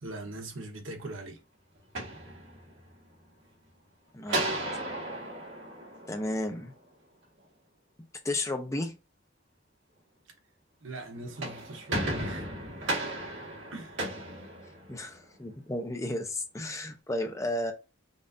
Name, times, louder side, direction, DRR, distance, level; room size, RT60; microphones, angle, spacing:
voice 1, 0.0-1.4 10.8-12.5 13.7-14.1, right 2 dB, 85° right, 1.2 m, -41 dB
sound 1, 1.8-3.0 4.3-6.7 11.1-15.2, right 1 dB, 65° right, 1.5 m, -35 dB
voice 2, 4.1-4.6 6.1-6.7 8.2-8.9 14.9-17.7, left 1 dB, 15° left, 0.6 m, -33 dB
5.4 x 2.5 x 2.6 m
head